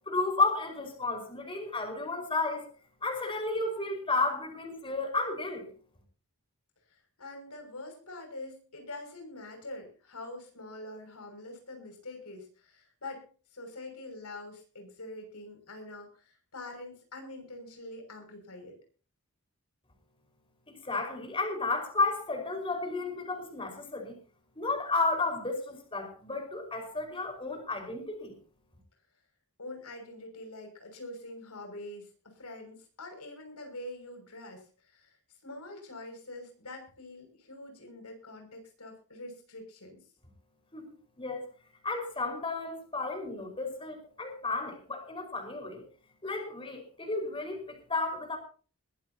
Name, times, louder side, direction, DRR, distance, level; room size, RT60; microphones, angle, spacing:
voice 1, 0.1-2.7 3.0-5.7 20.7-24.1 24.6-28.3 40.7-40.9 41.2-41.4 41.8-45.8 46.2-48.4, left 3 dB, 25° left, 2 dB, 5.0 m, -32 dB
voice 2, 6.9-18.8 29.6-35.1 35.4-40.0, left 2 dB, 90° left, 3 dB, 6.4 m, -45 dB
21.5 x 15.5 x 2.9 m, 0.38 s
head